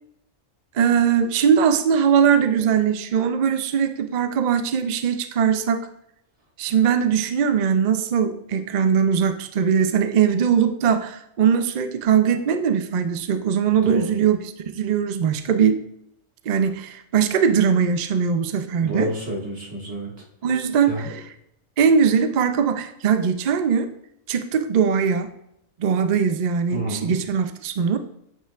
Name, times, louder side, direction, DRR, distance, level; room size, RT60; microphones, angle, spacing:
voice 1, 0.7-5.8 6.6-14.4 14.7-15.8 16.5-19.1 20.4-21.1 21.8-23.9 24.3-25.3 25.8-28.0, right 7 dB, 75° right, 9 dB, 0.4 m, -20 dB
voice 2, 13.8-14.1 18.8-20.1 20.8-21.1 26.7-27.2, right 1 dB, 55° right, -4 dB, 2.2 m, -29 dB
8.9 x 5.5 x 2.4 m, 0.77 s
omnidirectional pair, 1.4 m